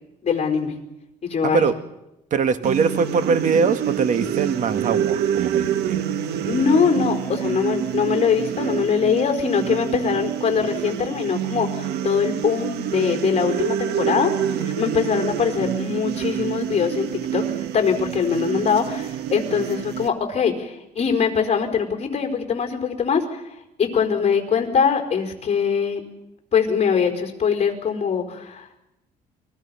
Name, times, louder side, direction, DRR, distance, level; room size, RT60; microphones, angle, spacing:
voice 1, 0.2-0.7 1.2-1.6 6.5-14.3 14.6-17.4 17.7-26.0 26.5-28.8, left 6 dB, 40° left, 4 dB, 4.4 m, -22 dB
voice 2, 1.4-1.7 2.3-6.0, right 5 dB, 50° right, 9 dB, 1.8 m, -22 dB
sound 1, 2.6-20.1, right 10 dB, 75° right, 1.3 m, -27 dB
29.5 x 22.0 x 5.8 m, 0.92 s
cardioid pair, 110°, 17 cm